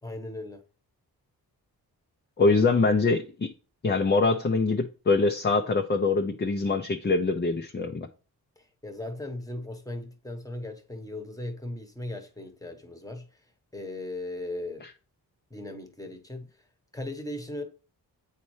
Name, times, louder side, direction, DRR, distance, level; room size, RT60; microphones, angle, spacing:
voice 1, 0.0-0.6 8.6-13.4 13.7-14.9 15.5-16.5 16.9-17.6, left 1 dB, 10° left, 1.1 m, -37 dB
voice 2, 2.4-3.5 3.8-8.1, left 3 dB, 25° left, 0.6 m, -24 dB
8.3 x 4.3 x 3.2 m
cardioid pair, 70°, 39 cm